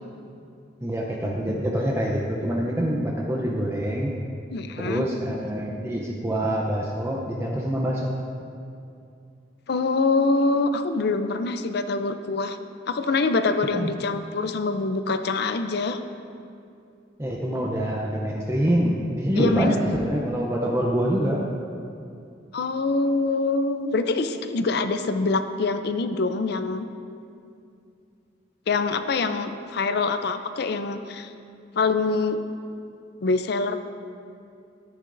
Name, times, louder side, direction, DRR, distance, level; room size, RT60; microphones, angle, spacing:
voice 1, 0.8-4.1 4.8-8.2 13.7-13.9 17.2-21.4, equal, 15° right, -2 dB, 0.6 m, -25 dB
voice 2, 4.5-5.0 9.7-12.6 12.9-16.0 19.4-19.7 22.5-26.9 28.7-31.3 31.7-32.4 33.2-33.8, left 3 dB, 60° left, 9 dB, 0.5 m, -24 dB
13.5 x 9.7 x 2.6 m, 2.5 s
head